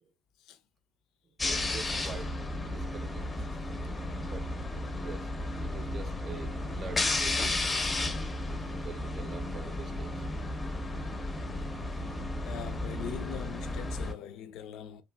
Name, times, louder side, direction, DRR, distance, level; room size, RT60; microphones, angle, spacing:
sound 1, 1.4-14.1, left 2 dB, 25° left, 0.6 m, -33 dB
voice 1, 1.5-2.4 2.7-3.3 4.2-4.5 4.9-5.3 5.6-7.5 8.8-10.3, right 5 dB, 40° right, 0.6 m, -45 dB
voice 2, 12.4-15.0, left 8 dB, 65° left, 0.4 m, -42 dB
2.8 x 2.5 x 2.2 m
hypercardioid pair, 60°, 0 cm